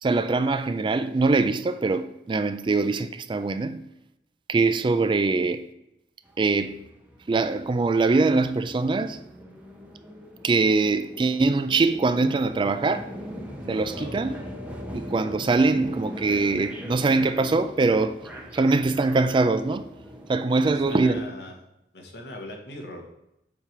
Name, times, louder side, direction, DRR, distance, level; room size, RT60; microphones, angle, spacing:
voice 1, 0.0-3.8 4.5-5.7 6.4-6.8 7.3-9.2 10.4-13.1 13.7-14.4 14.9-18.2 18.5-19.9 20.3-21.3, right 3 dB, 30° right, 0.3 m, -23 dB
sound 1, 6.2-21.2, equal, 10° right, 0.9 m, -41 dB
voice 2, 13.9-14.6 20.5-21.6 21.9-23.1, left 1 dB, 70° left, 1.3 m, -40 dB
7.2 x 3.4 x 5.8 m
head